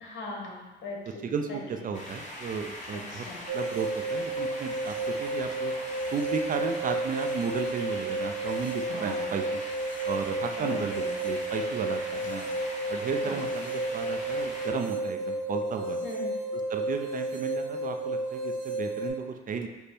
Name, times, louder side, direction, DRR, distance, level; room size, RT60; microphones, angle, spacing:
voice 1, 0.0-1.6 3.1-3.4 8.9-9.3 10.6-11.1 13.2-13.4 16.0-16.3, left 2 dB, 70° left, -2 dB, 1.1 m, -40 dB
voice 2, 1.2-3.2 3.5-5.7 6.1-9.6 10.1-12.5 12.9-16.0 16.5-19.7, right 5 dB, 45° right, 5 dB, 0.4 m, -34 dB
sound 1, 1.9-14.7, left 1 dB, 40° left, 1.0 m, -42 dB
sound 2, 3.5-19.1, right 2 dB, 85° right, 1.4 m, -32 dB
5.1 x 2.1 x 4.4 m, 1.1 s
cardioid pair, 90°, 20 cm